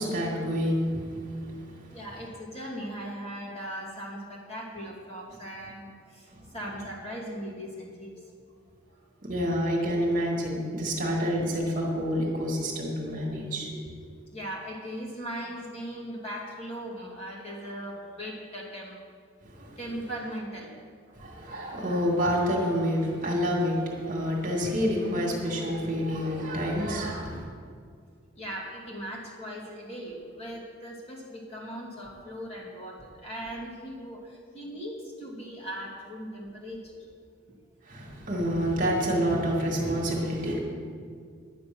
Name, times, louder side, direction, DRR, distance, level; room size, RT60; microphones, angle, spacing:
voice 1, 0.0-2.0 9.2-13.8 19.4-19.8 21.1-27.5 37.9-40.6, equal, 40° right, -2 dB, 2.2 m, -28 dB
voice 2, 1.9-8.3 8.8-9.0 14.3-19.0 19.8-20.7 28.4-37.1, equal, 30° left, -4 dB, 2.5 m, -39 dB
10.5 x 9.6 x 6.1 m, 2.1 s
head